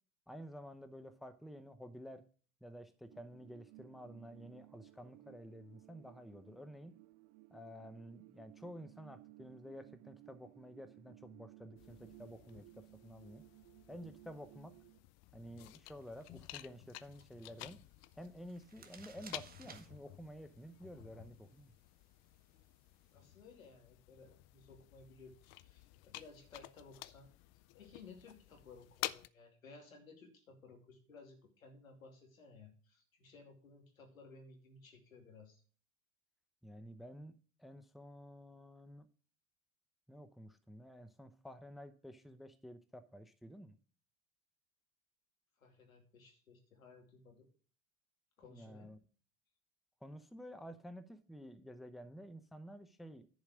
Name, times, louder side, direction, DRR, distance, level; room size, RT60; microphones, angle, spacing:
voice 1, 0.3-2.2 2.6-7.0 7.5-13.4 13.9-14.7 15.3-17.8 18.1-21.7 36.6-39.1 40.1-43.8 48.5-49.0 50.0-53.3, equal, ahead, 10 dB, 0.7 m, -51 dB
sound 1, 3.1-15.0, right 20 dB, 40° right, 0.4 m, -60 dB
sound 2, 11.8-29.3, left 17 dB, 40° left, 0.5 m, -52 dB
sound 3, 15.8-23.3, right 5 dB, 20° right, 1.5 m, -63 dB
voice 2, 23.1-27.3 27.8-35.6 45.6-47.5 48.4-48.9, left 4 dB, 90° left, 2 dB, 2.7 m, -58 dB
10.5 x 4.9 x 6.4 m, 0.41 s
hypercardioid pair, 85°, 40 cm